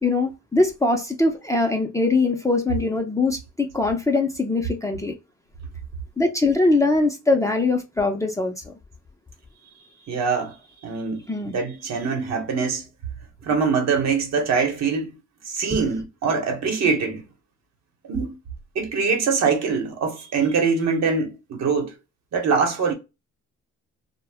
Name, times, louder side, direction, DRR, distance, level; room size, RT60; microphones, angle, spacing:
voice 1, 0.0-5.1 6.2-8.7 11.3-11.6, left 3 dB, 10° left, 0.5 m, -22 dB
voice 2, 10.1-10.6 10.8-12.9 13.4-15.2 15.4-17.2 18.0-18.4 18.7-21.9 22.3-22.9, right 5 dB, 60° right, 1.0 m, -23 dB
2.2 x 2.0 x 3.3 m
cardioid pair, 90°, 30 cm